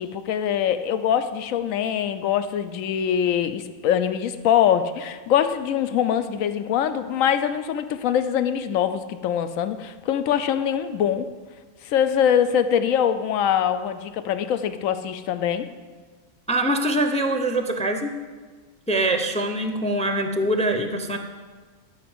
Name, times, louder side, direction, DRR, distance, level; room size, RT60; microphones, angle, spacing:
voice 1, 0.0-11.3 11.9-15.7, left 9 dB, 70° left, 11 dB, 1.1 m, -23 dB
voice 2, 16.5-18.1 18.9-21.2, right 1 dB, 5° left, 6 dB, 0.5 m, -23 dB
12.5 x 5.2 x 8.0 m, 1.4 s
omnidirectional pair, 1.5 m